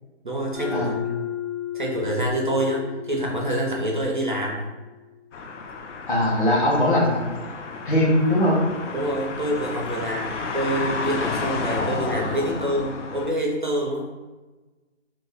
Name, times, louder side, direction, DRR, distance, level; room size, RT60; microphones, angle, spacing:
voice 1, 0.2-1.2 1.7-4.7 8.9-14.1, right 1 dB, 45° right, -1 dB, 0.4 m, -26 dB
Mallet percussion, 0.5-5.1, left 12 dB, 20° left, 0.5 m, -34 dB
sound 1, 5.3-13.3, left 4 dB, 75° left, 0.5 m, -31 dB
voice 2, 6.1-7.1 7.8-8.6, left 1 dB, 45° left, -5 dB, 0.9 m, -20 dB
2.6 x 2.1 x 3.3 m, 1.2 s
hypercardioid pair, 170°, 36 cm